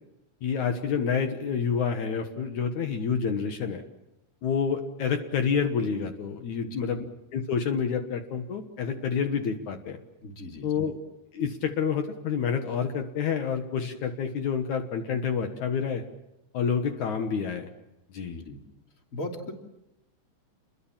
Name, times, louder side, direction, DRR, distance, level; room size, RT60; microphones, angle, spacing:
voice 1, 0.4-3.8 4.4-7.0 7.3-10.0 10.6-11.0 11.3-16.0 16.5-17.7 18.1-18.4, left 6 dB, 70° left, 6 dB, 2.7 m, -28 dB
voice 2, 10.2-10.9 18.3-18.6 19.1-19.5, left 1 dB, 25° left, 2 dB, 3.0 m, -38 dB
29.5 x 22.5 x 7.4 m, 0.90 s
omnidirectional pair, 3.7 m